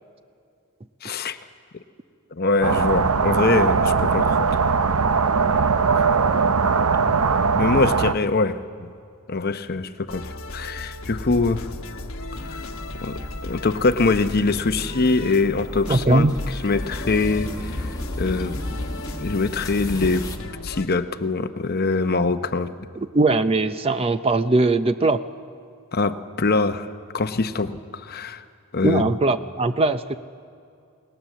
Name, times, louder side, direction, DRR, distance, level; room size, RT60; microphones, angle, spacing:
voice 1, 1.0-1.4 2.3-4.6 7.1-7.2 7.5-8.9 9.3-11.7 12.4-12.7 13.0-18.6 19.2-20.3 20.6-22.7 25.9-28.4 28.7-29.2, left 3 dB, 45° left, 9 dB, 0.8 m, -23 dB
sound 1, 2.6-8.1, right 5 dB, 80° right, 0.7 m, -20 dB
sound 2, 10.1-20.9, left 1 dB, 65° left, 1.2 m, -35 dB
sound 3, 12.3-20.4, left 1 dB, 15° left, 1.4 m, -35 dB
voice 2, 15.9-16.3 23.1-25.2 28.8-30.2, right 2 dB, 25° right, 11 dB, 0.5 m, -20 dB
28.5 x 18.5 x 7.5 m, 2.4 s
head